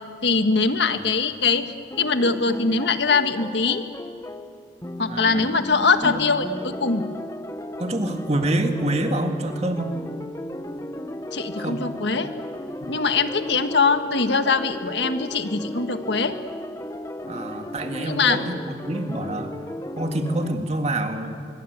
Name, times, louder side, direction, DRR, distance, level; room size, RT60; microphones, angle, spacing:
voice 1, 0.2-1.7 2.0-3.8 5.0-7.1 11.3-12.3 12.9-16.4 18.0-18.4, left 4 dB, 65° left, 8 dB, 1.5 m, -22 dB
sound 1, 1.9-20.6, left 1 dB, 15° left, 1.0 m, -35 dB
voice 2, 5.1-5.4 6.0-6.2 7.8-9.9 11.6-11.8 12.8-12.9 17.3-19.5 20.0-21.4, right 1 dB, 35° right, 5 dB, 2.0 m, -26 dB
25.5 x 23.0 x 8.2 m, 2.4 s
head